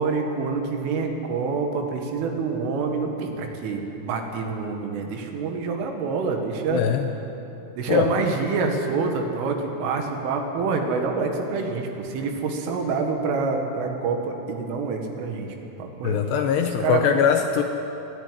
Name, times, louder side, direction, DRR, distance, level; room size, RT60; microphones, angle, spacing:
voice 1, 0.0-6.9 7.8-16.2 16.6-17.1, right 4 dB, 80° right, 3 dB, 4.3 m, -27 dB
voice 2, 6.7-7.1 7.9-8.1 16.0-17.6, left 8 dB, 80° left, 5 dB, 2.6 m, -21 dB
26.0 x 10.0 x 10.0 m, 3.0 s
omnidirectional pair, 5.6 m